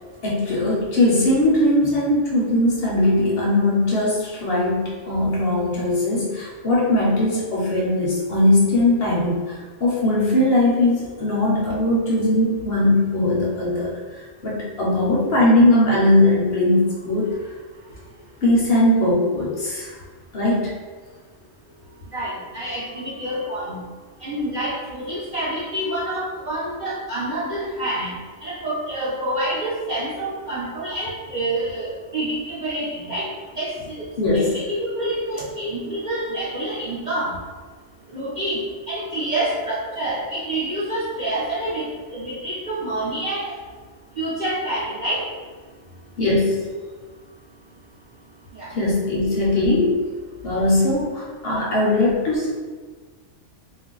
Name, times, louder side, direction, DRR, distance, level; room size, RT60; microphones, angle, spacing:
voice 1, 0.2-14.0 14.4-17.3 18.4-19.9 20.3-20.8 34.2-34.6 46.2-46.6 48.7-50.1 50.4-52.5, left 1 dB, 60° left, -4 dB, 0.7 m, -20 dB
voice 2, 22.1-23.8 24.2-28.1 28.4-33.3 33.6-34.1 34.3-37.3 38.1-38.6 38.9-43.5 44.2-45.2 48.6-48.7, right 1 dB, 50° right, -9 dB, 0.6 m, -27 dB
2.4 x 2.1 x 3.7 m, 1.4 s
omnidirectional pair, 1.3 m